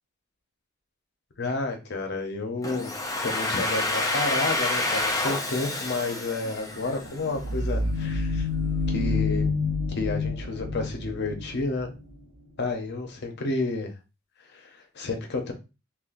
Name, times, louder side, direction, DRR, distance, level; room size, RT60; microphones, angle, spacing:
voice 1, 1.4-2.9 3.2-8.5 8.9-9.5 9.9-11.9 12.6-13.9 14.5-15.5, left 3 dB, 55° left, 4 dB, 0.8 m, -30 dB
Domestic sounds home sounds, 2.6-7.4, left 2 dB, 15° left, 0.5 m, -28 dB
sound 1, 6.6-12.2, left 3 dB, 65° right, 1.3 m, -28 dB
3.7 x 2.5 x 2.6 m, 0.28 s
head